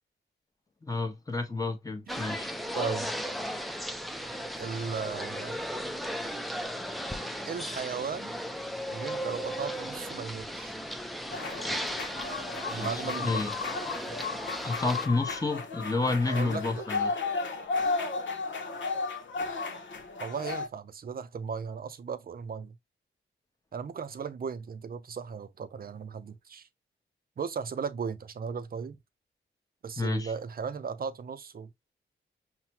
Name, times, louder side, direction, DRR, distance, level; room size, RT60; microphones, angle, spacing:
voice 1, 0.8-2.5 12.7-12.9 13.2-13.5 14.6-17.1 30.0-30.3, left 3 dB, 20° left, 1.0 m, -30 dB
sound 1, 2.1-15.1, equal, ahead, 0.5 m, -36 dB
voice 2, 2.7-3.1 4.6-5.6 7.5-8.4 8.9-10.8 12.7-13.4 16.3-16.6 20.2-22.7 23.7-26.7 27.4-29.0 29.8-31.9, right 6 dB, 50° right, 0.6 m, -36 dB
sound 2, 11.3-20.7, left 4 dB, 70° left, 0.9 m, -34 dB
5.7 x 2.2 x 2.9 m
cardioid pair, 85°, 20 cm